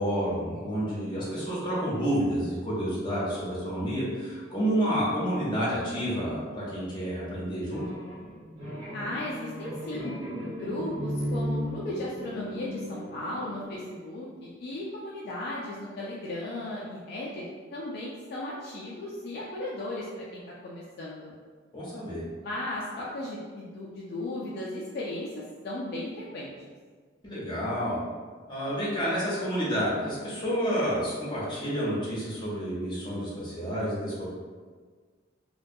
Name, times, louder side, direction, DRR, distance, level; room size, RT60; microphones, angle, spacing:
voice 1, 0.0-7.8 21.7-22.2 27.2-28.0 28.5-34.3, equal, 25° left, -8 dB, 0.8 m, -29 dB
sound 1, 7.7-13.8, equal, 65° right, 1.0 m, -36 dB
voice 2, 8.9-10.2 10.5-17.4 17.7-21.3 22.4-26.5, left 1 dB, 55° left, -5 dB, 0.3 m, -36 dB
2.2 x 2.2 x 2.6 m, 1.5 s
head